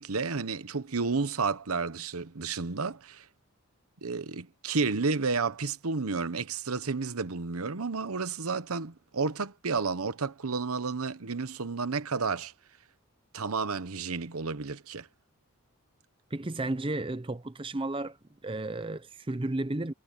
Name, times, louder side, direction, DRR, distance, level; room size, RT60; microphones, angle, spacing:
voice 1, 0.0-3.3 4.0-12.5 13.3-15.1, right 4 dB, 85° right, 1.0 m, -31 dB
voice 2, 16.3-18.2 18.4-19.9, right 2 dB, 25° right, 0.6 m, -33 dB
head